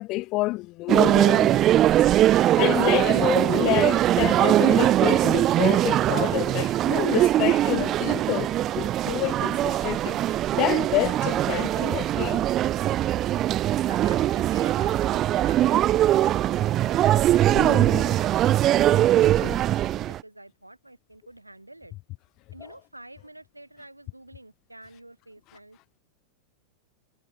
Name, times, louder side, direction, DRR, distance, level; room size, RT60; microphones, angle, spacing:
voice 1, 0.0-1.8 2.2-12.4 17.5-18.2 19.2-19.6, left 20 dB, 40° left, 1.9 m, -29 dB
sound 1, 0.9-20.2, right 13 dB, 30° right, 0.3 m, -21 dB
voice 2, 13.8-21.9 22.5-25.8, right 1 dB, 85° right, 5.6 m, -48 dB
figure-of-eight pair, 90°, 0 cm